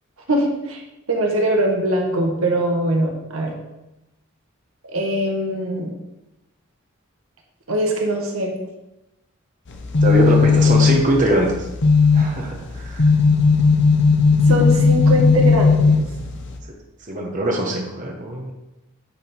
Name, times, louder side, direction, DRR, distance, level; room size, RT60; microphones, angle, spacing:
voice 1, 0.3-0.8 1.1-3.5 4.9-5.9 7.7-8.5 10.1-10.2 14.5-16.0, right 1 dB, 80° right, 0 dB, 1.5 m, -21 dB
sound 1, 9.7-16.6, left 4 dB, 55° left, 0.9 m, -16 dB
voice 2, 10.0-11.7 12.1-13.1 17.1-18.5, right 1 dB, 40° right, 0 dB, 1.1 m, -22 dB
10.0 x 3.7 x 4.4 m, 0.95 s
head